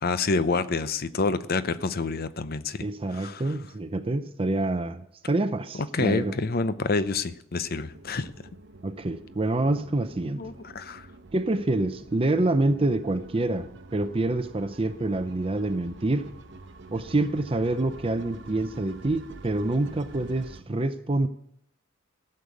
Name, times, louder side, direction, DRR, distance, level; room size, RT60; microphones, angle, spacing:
voice 1, 0.0-2.9 3.1-3.5 5.9-8.3 10.4-11.1, left 3 dB, 45° left, 13 dB, 0.6 m, -28 dB
voice 2, 2.8-6.4 8.8-10.5 11.3-16.3 16.9-21.3, right 2 dB, 25° right, 11 dB, 0.5 m, -27 dB
sound 1, 7.9-20.6, right 2 dB, 60° right, 0.9 m, -47 dB
15.0 x 6.7 x 8.3 m, 0.76 s
head